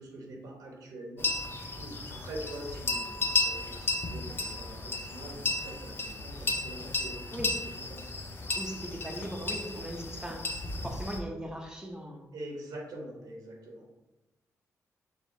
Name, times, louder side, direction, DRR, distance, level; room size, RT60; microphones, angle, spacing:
voice 1, 0.0-7.3 7.6-8.2 12.3-13.9, right 1 dB, 85° right, 0 dB, 1.0 m, -44 dB
sound 1, 1.2-11.2, left 3 dB, 40° left, 0.6 m, -34 dB
voice 2, 8.5-10.5 10.8-12.3, right 1 dB, 10° right, 0 dB, 0.6 m, -39 dB
4.8 x 2.9 x 2.7 m, 1.0 s
cardioid pair, 85°, 6 cm